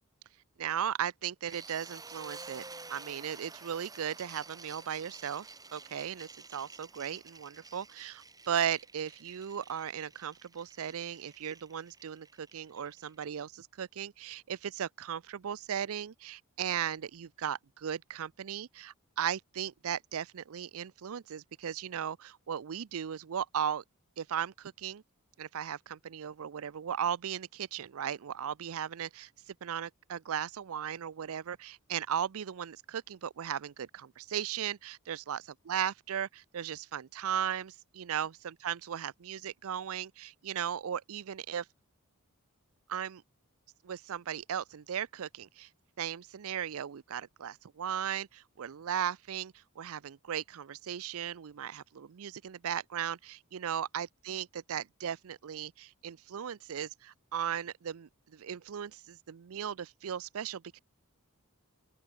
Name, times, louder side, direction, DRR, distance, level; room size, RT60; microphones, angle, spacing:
voice 1, 0.6-2.6 2.9-23.8 24.2-25.0 25.4-29.3 29.6-41.7 42.9-43.2 43.8-45.7 46.0-60.8, right 9 dB, 65° right, 0.5 m, -37 dB
sound 1, 1.5-13.4, right 3 dB, 15° right, 5.6 m, -51 dB
open air
head